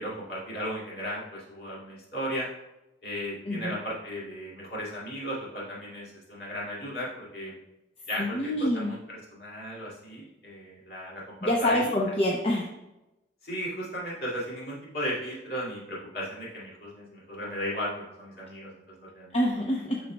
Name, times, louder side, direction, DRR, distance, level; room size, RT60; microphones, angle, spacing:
voice 1, 0.0-2.5 3.0-7.5 8.1-11.9 13.4-19.4, equal, 55° left, -5 dB, 2.4 m, -36 dB
voice 2, 8.2-8.9 11.4-12.7 19.3-20.0, left 1 dB, 35° left, -2 dB, 0.6 m, -26 dB
12.0 x 4.0 x 2.2 m, 0.95 s
head